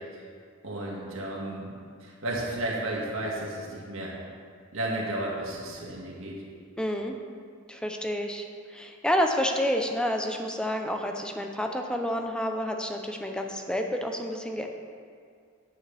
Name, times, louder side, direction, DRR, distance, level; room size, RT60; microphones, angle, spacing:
voice 1, 0.6-1.7 2.0-4.1 4.7-6.4, right 1 dB, 75° right, -4 dB, 1.9 m, -33 dB
voice 2, 6.8-7.1 7.7-8.4 8.7-14.7, equal, 5° left, 3 dB, 0.6 m, -29 dB
9.2 x 8.7 x 3.4 m, 2.1 s
head